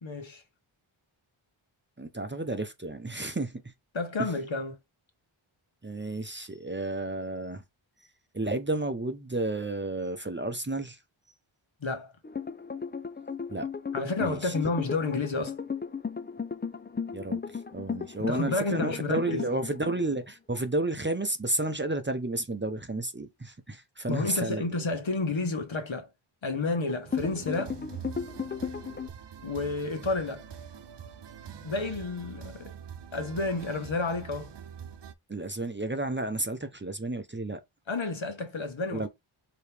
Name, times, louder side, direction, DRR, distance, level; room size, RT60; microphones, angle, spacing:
voice 1, 0.0-0.4 3.9-4.8 11.8-12.1 13.9-15.6 18.3-19.4 24.1-26.1 26.4-27.8 29.4-30.5 31.6-32.7 33.1-34.5 37.9-39.1, left 3 dB, 65° left, 1.4 m, -30 dB
voice 2, 2.0-3.6 4.2-4.3 5.8-7.6 8.3-11.0 13.5-13.7 14.2-14.5 17.1-24.6 35.3-37.6 38.9-39.1, right 2 dB, 20° right, 0.7 m, -32 dB
sound 1, 12.2-20.2 26.9-29.1, left 6 dB, 20° left, 0.4 m, -35 dB
sound 2, 27.0-35.1, right 8 dB, 55° right, 0.6 m, -44 dB
4.7 x 3.1 x 3.4 m
wide cardioid pair, 60°, 50 cm